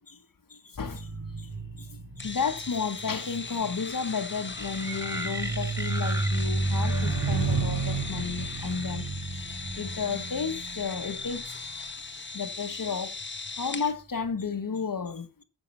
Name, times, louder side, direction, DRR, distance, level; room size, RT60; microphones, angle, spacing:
voice 1, 0.5-1.1 1.4-9.1 9.7-11.6 12.3-13.1 13.6-15.4, left 5 dB, 55° left, 1.3 m, -33 dB
sound 1, 0.9-12.5 13.2-13.5, right 3 dB, 70° right, 4.7 m, -32 dB
sound 2, 2.2-13.9, left 4 dB, 30° left, 1.0 m, -39 dB
sound 3, 4.5-9.8, equal, 5° right, 1.5 m, -40 dB
9.7 x 5.6 x 7.0 m
wide cardioid pair, 125°, 41 cm